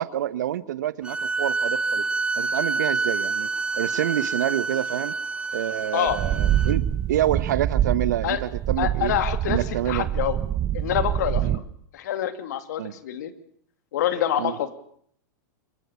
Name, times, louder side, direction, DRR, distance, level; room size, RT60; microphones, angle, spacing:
voice 1, 0.0-2.0 2.4-3.5 3.7-5.1 5.5-9.1 9.5-10.1 11.4-11.6 12.8-12.9 14.4-14.6, right 12 dB, 75° right, 15 dB, 1.3 m, -27 dB
sound 1, 1.0-6.7, right 3 dB, 10° right, 1.6 m, -27 dB
sound 2, 6.1-11.6, right 11 dB, 30° right, 1.3 m, -25 dB
voice 2, 8.8-10.4 10.7-11.5 11.9-13.3 13.9-14.7, left 11 dB, 70° left, 9 dB, 2.8 m, -26 dB
25.5 x 23.5 x 7.2 m, 0.63 s
hypercardioid pair, 110°, 10 cm